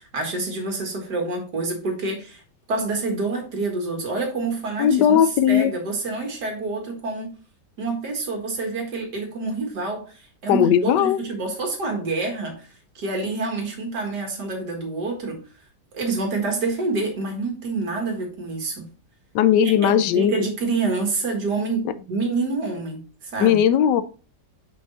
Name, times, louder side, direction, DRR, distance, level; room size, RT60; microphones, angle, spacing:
voice 1, 0.0-2.4 2.7-7.3 7.8-12.7 13.0-15.4 15.9-18.9 19.6-23.6, right 3 dB, 70° right, 2.3 m, -27 dB
voice 2, 4.8-5.7 10.5-11.2 19.3-20.5 23.4-24.0, left 9 dB, 85° left, 1.2 m, -18 dB
6.1 x 5.3 x 3.9 m
omnidirectional pair, 1.8 m